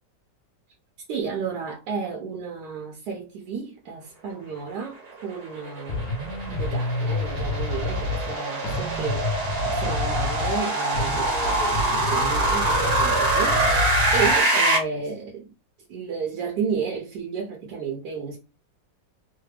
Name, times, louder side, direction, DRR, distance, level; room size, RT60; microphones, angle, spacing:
voice 1, 1.1-6.0 6.5-15.5 15.9-18.4, right 5 dB, 70° right, 1.2 m, -32 dB
sound 1, 5.2-14.8, right 2 dB, 45° right, 0.9 m, -24 dB
sound 2, 5.9-8.4 8.6-10.6 10.9-14.4, left 3 dB, 60° left, 0.9 m, -29 dB
3.2 x 2.1 x 3.2 m
omnidirectional pair, 1.9 m